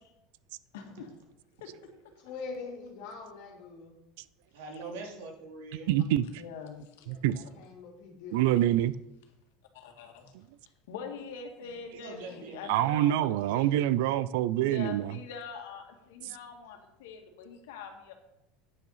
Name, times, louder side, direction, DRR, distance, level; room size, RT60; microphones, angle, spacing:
voice 1, 0.7-1.1 1.6-1.9 4.7-4.9 6.4-7.1 8.4-8.5 9.7-10.3 10.9-14.1 14.6-18.1, left 6 dB, 85° left, 4 dB, 1.9 m, -44 dB
voice 2, 2.2-4.0 7.0-8.4, left 4 dB, 50° left, 1 dB, 2.6 m, -43 dB
voice 3, 4.5-5.9 12.0-12.8, right 3 dB, 80° right, 1 dB, 2.9 m, -43 dB
voice 4, 5.9-6.3 7.1-7.4 8.3-8.9 12.7-15.1, right 13 dB, 65° right, 17 dB, 0.4 m, -26 dB
9.3 x 6.6 x 5.7 m, 0.87 s
supercardioid pair, 175°, 0 cm